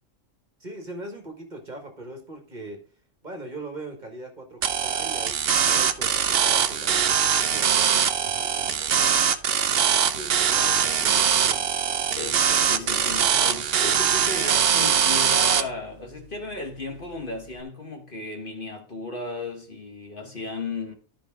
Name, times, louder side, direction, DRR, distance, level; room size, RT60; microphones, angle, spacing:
voice 1, 0.6-2.9 3.2-9.4 10.1-12.0 12.5-13.2, right 2 dB, 35° right, 1.6 m, -41 dB
sound 1, 4.6-15.6, right 8 dB, 55° right, 0.8 m, -22 dB
voice 2, 10.6-11.3 12.1-20.9, left 2 dB, 40° left, 1.5 m, -35 dB
12.5 x 5.1 x 3.7 m
omnidirectional pair, 1.4 m